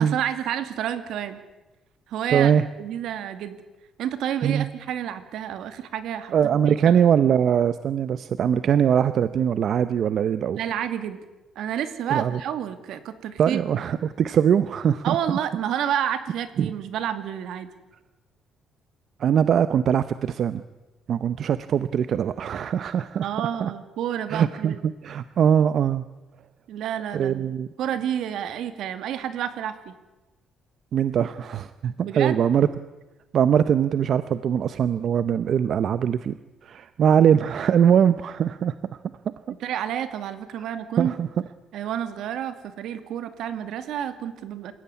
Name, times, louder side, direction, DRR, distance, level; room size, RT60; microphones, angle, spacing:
voice 1, 0.0-1.4 2.1-2.5 2.8-3.6 4.0-6.3 6.7-7.0 10.6-11.2 11.6-13.6 15.0-17.7 23.2-24.8 26.7-27.5 27.8-30.0 32.0-32.4 39.6-41.1 41.7-44.7, right 10 dB, 75° right, 11 dB, 2.3 m, -29 dB
voice 2, 2.3-2.6 4.4-4.7 6.3-10.6 12.1-12.4 13.4-15.2 16.6-16.7 19.2-20.6 21.1-23.3 23.6-23.7 24.3-26.0 27.1-27.7 30.9-32.7 33.3-39.0 39.3-39.4 41.0-41.3, right 8 dB, 50° right, 13 dB, 0.8 m, -22 dB
28.0 x 16.0 x 9.8 m, 1.1 s
cardioid pair, 150°, 0 cm